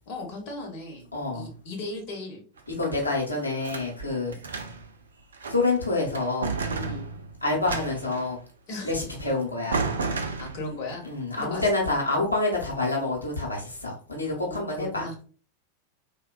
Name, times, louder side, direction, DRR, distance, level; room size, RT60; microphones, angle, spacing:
voice 1, 0.1-1.1 1.3-2.4 6.8-7.1 8.7-8.9 10.0-11.0 11.3-11.7 14.3-15.1, left 2 dB, 45° left, 1 dB, 0.9 m, -37 dB
voice 2, 1.1-1.5 2.7-4.6 5.5-6.5 7.4-8.4 8.8-9.9 11.0-15.1, left 2 dB, 85° left, -3 dB, 0.8 m, -27 dB
sound 1, 2.6-3.9 4.3-4.9 5.3-5.8 6.1-8.3 9.2-9.3 9.7-10.9, right 4 dB, 70° right, 0.4 m, -32 dB
3.4 x 2.2 x 2.2 m, 0.39 s
figure-of-eight pair, 90°, 0 cm